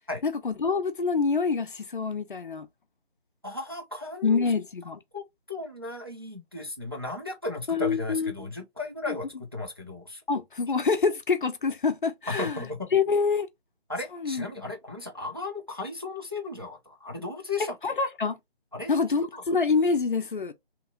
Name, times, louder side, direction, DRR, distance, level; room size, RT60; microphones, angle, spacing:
voice 1, 0.2-2.7 4.2-5.0 7.7-8.5 9.1-9.2 10.3-12.6 12.9-13.5 14.1-14.5 17.6-18.4 18.9-20.5, left 5 dB, 55° left, 0.5 m, -26 dB
voice 2, 3.4-4.4 5.1-10.2 12.3-12.9 13.9-17.7 18.7-18.9 19.3-19.4, left 3 dB, 25° right, 0.4 m, -35 dB
2.8 x 2.5 x 2.2 m
figure-of-eight pair, 155°, 32 cm